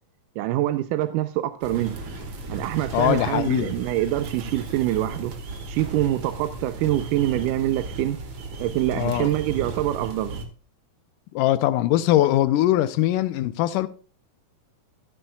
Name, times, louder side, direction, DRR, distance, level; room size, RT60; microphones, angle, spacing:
voice 1, 0.4-2.0 2.5-5.3 5.7-8.2 8.6-10.5, right 14 dB, 80° right, 2.1 m, -25 dB
sound 1, 1.6-10.4, right 2 dB, 45° right, 2.0 m, -35 dB
voice 2, 2.9-3.7 9.0-9.3 11.3-13.9, left 13 dB, 80° left, 2.1 m, -21 dB
13.5 x 12.5 x 2.3 m
omnidirectional pair, 3.9 m